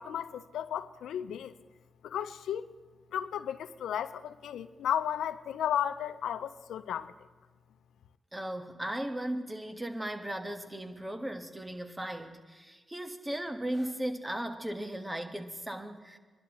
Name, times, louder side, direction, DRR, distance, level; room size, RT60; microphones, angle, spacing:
voice 1, 0.0-1.5 2.0-2.7 3.1-7.1, left 9 dB, 80° left, 13 dB, 0.5 m, -34 dB
voice 2, 8.3-16.2, right 1 dB, 15° right, 6 dB, 1.4 m, -37 dB
23.5 x 11.5 x 3.1 m, 1.4 s
supercardioid pair, 45°, 0 cm